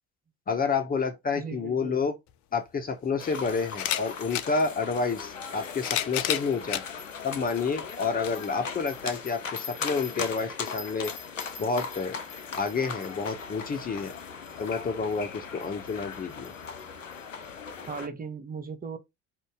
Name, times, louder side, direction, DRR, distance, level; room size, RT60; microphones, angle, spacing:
voice 1, 0.5-2.1 2.5-6.8 7.2-11.1 11.6-12.2 12.6-14.1 14.6-16.5, left 4 dB, 25° left, 0.8 m, -29 dB
voice 2, 1.4-2.0 17.9-19.0, right 5 dB, 25° right, 1.0 m, -37 dB
sound 1, 2.3-2.4 3.7-4.5 5.5-6.9 7.6-7.7 9.0-9.1, left 11 dB, 50° left, 0.6 m, -30 dB
sound 2, 3.2-18.1, left 6 dB, 85° left, 0.7 m, -38 dB
4.4 x 2.7 x 3.5 m
figure-of-eight pair, 60°, 37 cm